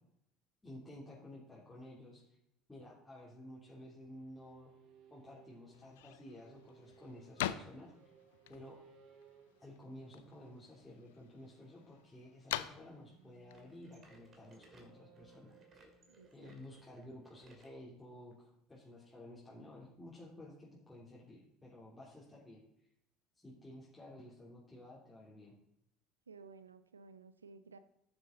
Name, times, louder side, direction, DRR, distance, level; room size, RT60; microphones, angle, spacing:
voice 1, 0.6-2.2 2.7-4.7 5.1-7.9 8.5-8.8 9.6-15.5 16.3-22.6 23.4-25.6, left 1 dB, 10° left, -7 dB, 3.1 m, -53 dB
sound 1, 3.2-17.9, right 6 dB, 55° right, 1.3 m, -65 dB
sound 2, 5.7-14.9, left 13 dB, 70° left, 0.5 m, -46 dB
sound 3, 13.5-17.8 18.3-18.4 19.1-19.2 20.1-20.2, right 2 dB, 35° right, 2.7 m, -64 dB
voice 2, 16.1-16.5 26.3-27.8, right 4 dB, 85° right, 14 dB, 0.6 m, -56 dB
14.0 x 7.0 x 3.9 m, 0.77 s
figure-of-eight pair, 65°, 0 cm